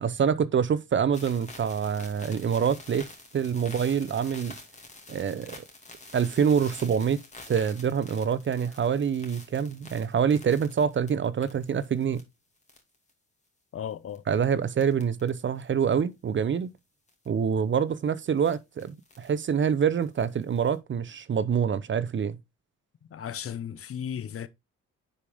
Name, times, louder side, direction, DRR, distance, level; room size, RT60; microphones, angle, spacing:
voice 1, 0.0-3.0 3.3-4.5 5.1-5.6 6.1-7.2 7.5-12.3 14.3-16.7 17.3-22.4, right 7 dB, 40° right, 0.7 m, -26 dB
sound 1, 1.1-12.2 12.6-13.1 14.1-14.3 14.8-15.3 15.6-15.7 17.1-17.3 18.4-19.4 20.0-20.7, left 2 dB, 25° left, 2.4 m, -48 dB
voice 2, 13.7-14.2 23.1-24.5, left 9 dB, 50° left, 0.8 m, -35 dB
10.0 x 5.0 x 3.5 m
cardioid pair, 90°, 30 cm